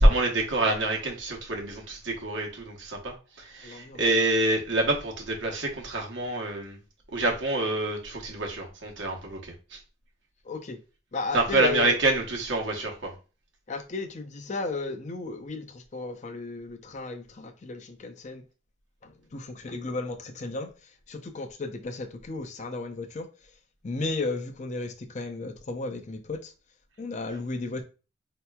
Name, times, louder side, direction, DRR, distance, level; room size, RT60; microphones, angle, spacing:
voice 1, 0.0-6.8 7.1-9.8 11.3-13.1, right 2 dB, 75° right, 1.0 m, -26 dB
voice 2, 3.6-4.0 10.4-10.8 11.1-12.0 13.7-18.4 19.0-23.3 23.8-26.5 27.0-27.8, left 3 dB, 40° left, 0.5 m, -34 dB
4.5 x 2.9 x 2.2 m
head